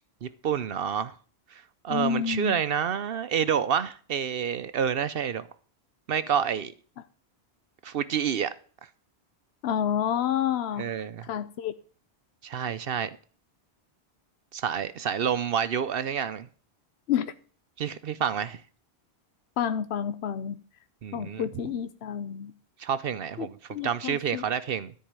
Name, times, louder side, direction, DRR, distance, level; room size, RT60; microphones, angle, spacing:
voice 1, 0.2-1.1 1.5-5.5 6.1-6.7 7.8-8.5 10.8-11.3 12.4-13.1 14.5-16.5 17.8-18.6 21.0-21.5 22.8-24.9, right 8 dB, 65° right, 0.8 m, -28 dB
voice 2, 1.9-2.6 9.6-10.8 11.2-11.7 17.1-17.3 19.6-20.6 21.1-22.5 23.4-24.4, left 9 dB, 75° left, 1.0 m, -29 dB
13.5 x 4.6 x 8.8 m
omnidirectional pair, 1.1 m